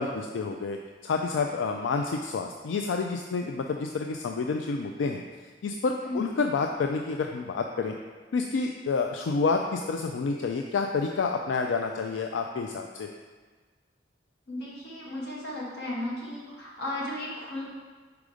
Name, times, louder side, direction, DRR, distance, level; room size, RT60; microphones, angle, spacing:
voice 1, 0.0-5.2 5.6-7.9 8.3-13.1, left 4 dB, 90° left, 3 dB, 0.4 m, -29 dB
voice 2, 14.5-17.7, left 1 dB, 65° left, -5 dB, 1.7 m, -35 dB
5.1 x 4.7 x 4.9 m, 1.4 s
head